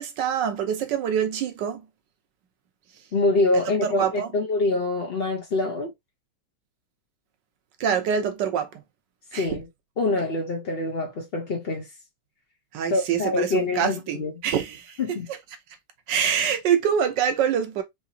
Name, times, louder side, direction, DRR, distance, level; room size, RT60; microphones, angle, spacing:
voice 1, 0.0-1.8 3.8-4.3 7.8-8.7 9.3-9.6 12.7-15.0 16.1-17.8, right 8 dB, 65° right, 1.3 m, -25 dB
voice 2, 3.1-5.9 9.3-9.7 10.0-11.9 12.9-14.3 15.0-15.3, left 2 dB, 50° left, 0.7 m, -25 dB
4.7 x 2.9 x 2.7 m
omnidirectional pair, 2.2 m